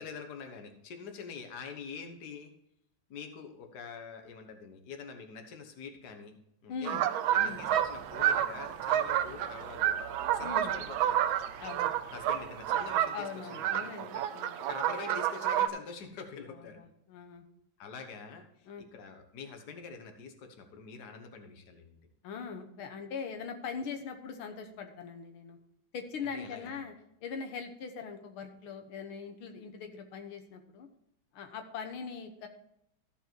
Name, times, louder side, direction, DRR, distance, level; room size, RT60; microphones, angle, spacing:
voice 1, 0.0-2.5 3.1-7.0 7.3-10.0 10.3-11.4 12.1-14.2 14.6-16.8 17.8-22.0 26.3-26.8, left 5 dB, 55° left, 5 dB, 1.6 m, -45 dB
voice 2, 6.7-7.1 7.3-7.6 10.4-10.7 11.6-11.9 13.1-14.6 16.5-17.4 18.7-18.8 22.2-25.6 25.9-26.9 27.2-30.9 31.3-32.5, left 6 dB, 85° left, 5 dB, 1.9 m, -41 dB
sound 1, 6.9-15.7, right 11 dB, 80° right, 1.4 m, -30 dB
sound 2, 7.5-13.0, right 1 dB, 55° right, 2.0 m, -53 dB
14.0 x 5.4 x 4.5 m, 0.77 s
omnidirectional pair, 2.3 m